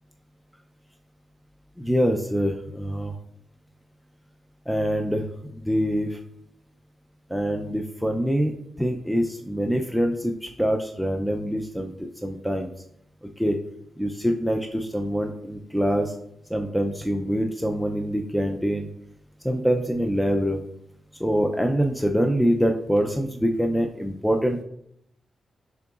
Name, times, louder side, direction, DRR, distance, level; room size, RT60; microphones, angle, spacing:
voice 1, 1.8-3.2 4.7-6.2 7.3-12.7 13.4-13.6 14.0-16.1 16.5-18.9 19.4-20.6 21.2-24.6, equal, ahead, 3 dB, 0.4 m, -25 dB
10.5 x 3.8 x 2.4 m, 0.74 s
wide cardioid pair, 130°, 0 cm